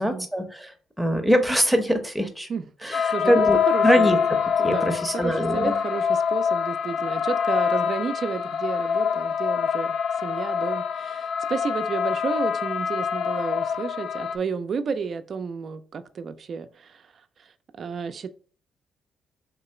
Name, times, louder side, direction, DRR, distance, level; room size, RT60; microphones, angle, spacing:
voice 1, 0.0-2.5 2.8-3.6 3.8-4.4 4.6-5.7, equal, ahead, 5 dB, 0.8 m, -23 dB
voice 2, 2.5-4.2 4.6-10.0 10.2-17.1 17.4-17.5 17.8-18.3, right 5 dB, 50° right, 11 dB, 0.4 m, -32 dB
sound 1, 2.9-14.4, left 7 dB, 70° left, 0.3 m, -25 dB
3.7 x 2.9 x 4.3 m, 0.42 s
cardioid pair, 90°, 0 cm